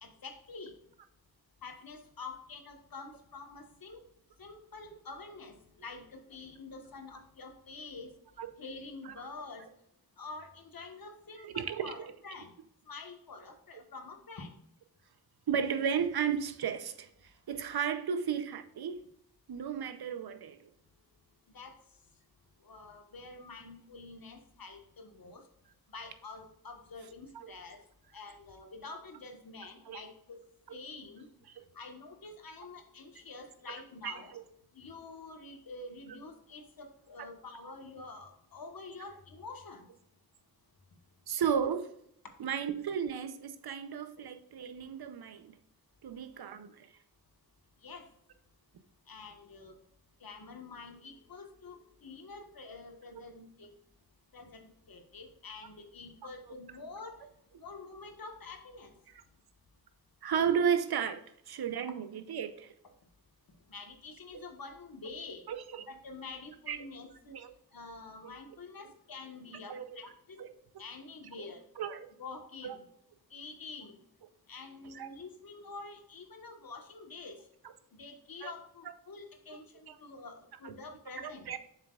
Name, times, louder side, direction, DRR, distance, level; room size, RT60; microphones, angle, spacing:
voice 1, 0.0-0.7 1.6-4.0 4.4-5.6 5.8-8.1 8.6-9.7 10.2-12.5 12.9-14.5 21.5-21.7 22.6-25.4 25.9-27.8 28.1-30.4 30.7-31.3 31.7-34.3 34.7-39.9 47.8-48.1 49.1-49.7 50.2-53.7 54.3-54.6 54.9-57.2 57.6-58.9 63.7-65.4 65.9-67.3 67.7-70.4 70.8-71.6 72.2-72.8 73.3-74.0 74.5-77.4 77.9-81.5, left 3 dB, 70° left, 1.4 m, -47 dB
voice 2, 11.4-12.1 15.5-17.1 17.5-19.0 19.5-20.7 27.3-27.5 29.9-30.0 30.7-30.8 34.0-34.4 41.3-41.9 42.4-45.5 46.0-46.9 53.1-53.2 60.2-61.2 61.5-62.7 65.5-65.9 66.7-66.8 67.3-67.5 68.2-68.4 69.7-69.8 70.4-70.5 71.8-72.1 72.6-72.8 74.9-75.1 78.4-78.5 79.9-80.0 80.6-80.7 81.2-81.6, right 7 dB, 90° right, 0.7 m, -34 dB
7.6 x 6.4 x 2.4 m
wide cardioid pair, 95°, 37 cm